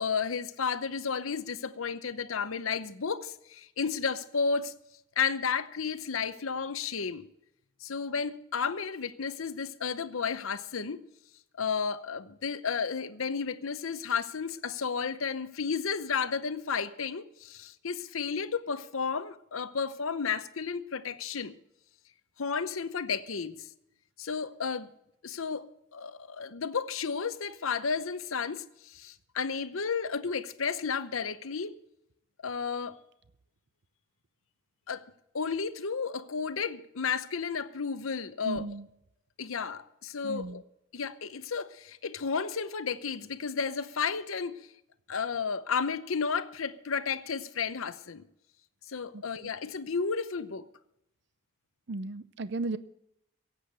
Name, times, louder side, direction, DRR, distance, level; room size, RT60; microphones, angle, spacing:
voice 1, 0.0-4.7 5.2-7.3 7.8-11.0 11.6-21.5 22.4-23.7 24.2-24.9 25.2-25.7 25.9-31.8 32.4-33.0 34.9-35.0 35.3-38.6 39.4-40.6 40.9-44.6 45.1-48.2 48.9-50.6, left 5 dB, 80° left, 0.8 m, -32 dB
voice 2, 38.4-38.9 40.2-40.6 49.1-49.2 51.9-52.8, right 3 dB, 55° right, 0.5 m, -35 dB
16.5 x 8.5 x 7.6 m
head